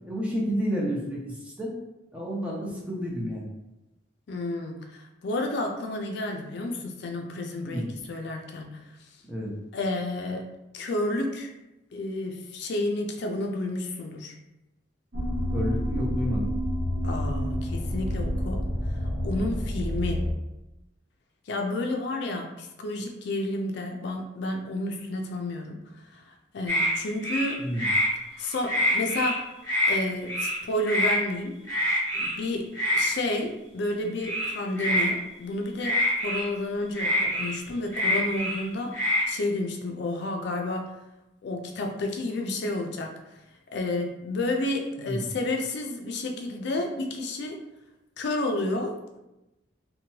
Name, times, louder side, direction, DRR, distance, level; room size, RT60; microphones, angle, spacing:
voice 1, 0.1-1.7 2.1-3.5 7.6-7.8 9.3-9.5 15.5-16.5 27.6-27.9 45.0-45.2, equal, 5° right, -4 dB, 0.6 m, -30 dB
voice 2, 4.3-8.8 9.7-10.4 10.7-11.5 11.9-14.3 17.0-18.6 19.2-20.3 21.5-25.8 26.1-27.6 28.4-29.5 29.8-31.6 32.1-36.0 36.2-38.9 39.3-40.9 41.4-43.4 43.7-47.6 48.2-49.2, left 2 dB, 60° left, 3 dB, 0.4 m, -31 dB
sound 1, 15.1-20.3, equal, 85° right, 0.7 m, -29 dB
sound 2, 26.7-26.9 27.2-28.1 28.5-29.4 29.6-30.0 30.3-30.6 30.9-31.2 31.7-32.3 32.7-33.1 34.2-35.1 35.8-36.4 36.9-38.6 38.9-39.3, equal, 15° left, 0.9 m, -25 dB
2.9 x 2.2 x 2.8 m, 0.95 s
head